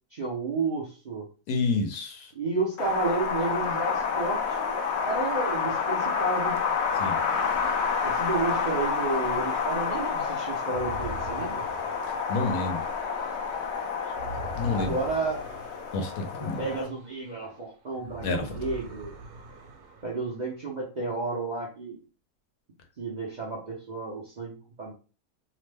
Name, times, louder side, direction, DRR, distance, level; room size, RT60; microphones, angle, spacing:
voice 1, 0.1-1.3 2.3-6.6 8.0-11.6 14.7-15.4 16.6-19.1 20.0-22.0 23.0-24.9, right 3 dB, 55° right, -5 dB, 0.5 m, -31 dB
voice 2, 1.5-2.3 7.0-7.2 12.3-12.8 14.5-15.0 15.9-16.6 18.2-18.6, left 3 dB, 85° left, 4 dB, 1.2 m, -29 dB
Wind, 2.8-16.8, left 6 dB, 65° left, 0.6 m, -29 dB
sound 1, 10.6-17.6 17.9-20.6, right 2 dB, 70° right, 0.9 m, -44 dB
3.0 x 2.0 x 3.2 m, 0.35 s
omnidirectional pair, 1.6 m